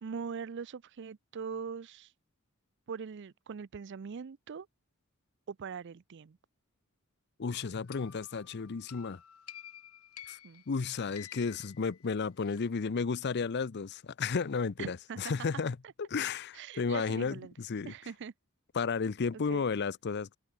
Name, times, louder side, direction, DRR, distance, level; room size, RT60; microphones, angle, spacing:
voice 1, 0.0-2.1 2.9-4.7 5.5-6.4 10.4-10.6 14.8-15.3 16.5-17.5 17.8-18.3 19.3-19.7, right 6 dB, 55° right, 0.4 m, -42 dB
voice 2, 7.4-9.2 10.3-10.4 10.7-15.8 16.1-17.9 18.7-20.4, left 5 dB, 50° left, 0.5 m, -33 dB
sound 1, 7.9-12.6, left 10 dB, 75° left, 2.8 m, -52 dB
open air
head